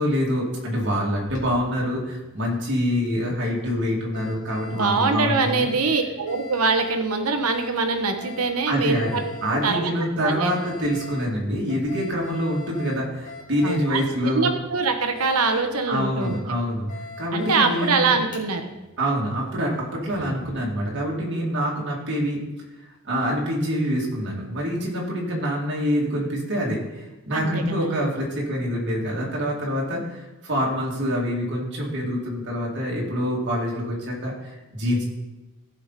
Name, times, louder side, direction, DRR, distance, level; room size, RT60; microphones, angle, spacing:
voice 1, 0.0-5.7 8.7-14.5 15.9-16.9 17.2-18.2 19.0-22.4 23.0-35.0, equal, 55° right, -3 dB, 2.3 m, -26 dB
Alarm, 1.1-20.5, left 3 dB, 35° left, 2.3 m, -43 dB
voice 2, 4.7-9.2 9.5-9.9 10.2-10.5 13.6-14.0 14.3-16.4 17.3-18.7 27.3-28.0, right 4 dB, 80° right, 7 dB, 1.0 m, -23 dB
16.0 x 5.7 x 4.1 m, 1.0 s
head